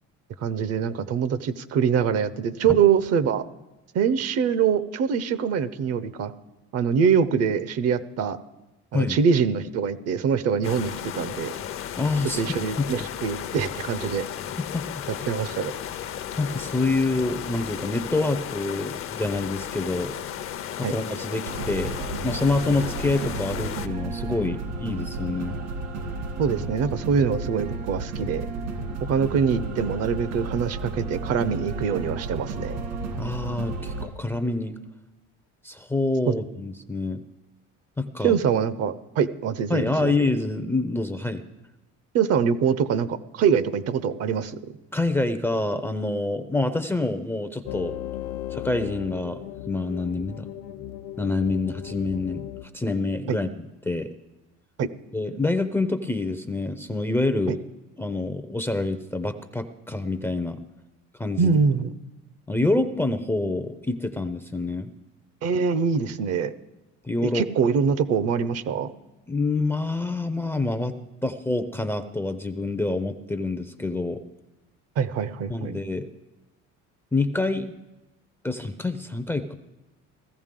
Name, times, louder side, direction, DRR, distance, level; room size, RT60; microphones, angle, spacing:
voice 1, 0.4-3.4 3.9-6.3 6.7-8.4 8.9-11.5 12.4-14.2 15.3-15.7 20.8-20.9 26.4-28.4 29.1-32.8 36.3-36.4 38.2-40.2 42.1-44.6 53.3-53.4 54.8-54.9 57.5-57.6 61.4-61.9 65.4-66.5 67.2-68.9 75.0-75.8, right 6 dB, 55° right, 14 dB, 0.7 m, -24 dB
sound 1, 10.6-23.9, left 10 dB, 45° left, 0.7 m, -34 dB
voice 2, 12.0-12.4 12.8-12.9 14.6-14.9 15.2-15.3 16.4-20.1 20.8-22.0 22.2-25.5 33.2-34.7 35.6-37.2 38.0-38.4 39.7-41.4 44.9-48.0 48.5-49.4 49.7-50.5 51.2-52.5 52.7-53.5 53.8-54.1 55.1-57.6 58.0-60.6 61.2-61.5 62.5-64.9 67.0-67.5 69.3-70.9 71.2-74.2 75.5-76.1 77.1-77.7 78.4-79.6, left 2 dB, 10° left, 10 dB, 0.5 m, -26 dB
sound 2, 21.5-34.1, right 3 dB, 75° right, 2.1 m, -32 dB
sound 3, 47.7-52.7, left 12 dB, 75° left, 0.8 m, -36 dB
16.0 x 14.5 x 3.7 m, 1.0 s
cardioid pair, 135°, 30 cm